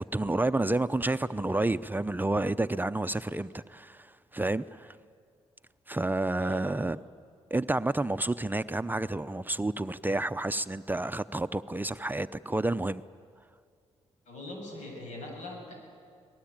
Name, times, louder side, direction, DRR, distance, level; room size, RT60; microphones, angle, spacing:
voice 1, 0.0-5.0 5.9-7.0 7.5-13.0, right 2 dB, 15° right, 12 dB, 0.6 m, -30 dB
voice 2, 14.3-15.7, left 2 dB, 75° left, 1 dB, 8.0 m, -41 dB
24.5 x 19.5 x 8.8 m, 2.2 s
supercardioid pair, 60°, 12 cm